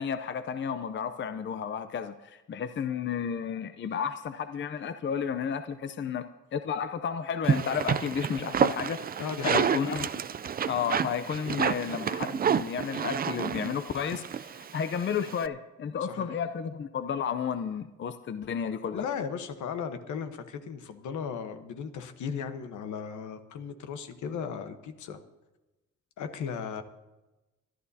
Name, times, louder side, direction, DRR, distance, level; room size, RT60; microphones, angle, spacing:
voice 1, 0.0-10.1 10.7-19.0, left 7 dB, 40° left, 11 dB, 0.6 m, -32 dB
sound 1, 7.4-15.5, right 7 dB, 30° right, 0.4 m, -29 dB
voice 2, 9.2-9.7 16.0-16.3 18.9-25.2 26.2-26.8, left 6 dB, 75° left, 8 dB, 1.2 m, -36 dB
25.0 x 11.0 x 2.8 m, 1.1 s
cardioid pair, 90°, 30 cm